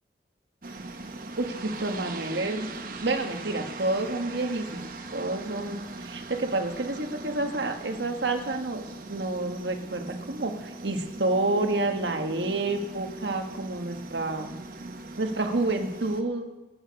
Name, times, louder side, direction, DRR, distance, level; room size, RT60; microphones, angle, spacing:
sound 1, 0.6-16.2, right 2 dB, 50° right, 1.1 m, -40 dB
voice 1, 1.4-2.7 3.0-14.5 15.2-16.5, right 2 dB, 80° right, 5 dB, 1.5 m, -29 dB
24.0 x 8.9 x 5.3 m, 1.2 s
head